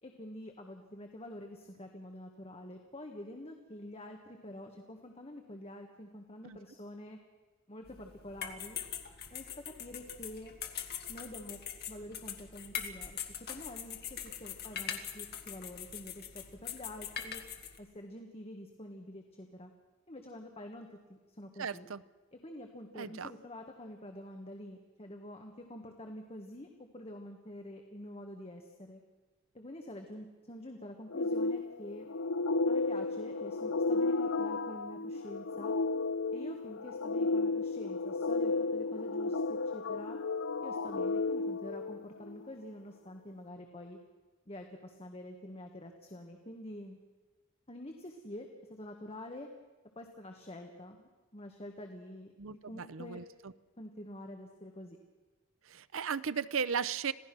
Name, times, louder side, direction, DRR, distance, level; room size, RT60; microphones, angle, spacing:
voice 1, 0.0-7.2 7.7-8.8 9.3-10.5 11.1-11.6 11.9-17.4 17.8-19.7 20.1-21.9 22.3-29.0 29.5-32.1 32.6-35.8 36.3-40.2 40.6-44.0 44.4-47.0 47.7-49.5 49.9-53.2 53.8-55.0, left 1 dB, 30° left, 3 dB, 1.5 m, -47 dB
sound 1, 7.8-17.8, left 8 dB, 50° left, 1.7 m, -43 dB
voice 2, 21.6-22.0 23.0-23.3 52.4-53.2 55.7-57.1, right 6 dB, 75° right, 15 dB, 0.7 m, -36 dB
sound 2, 31.1-42.4, left 3 dB, 75° left, 0.5 m, -33 dB
26.5 x 16.5 x 6.1 m, 1.3 s
head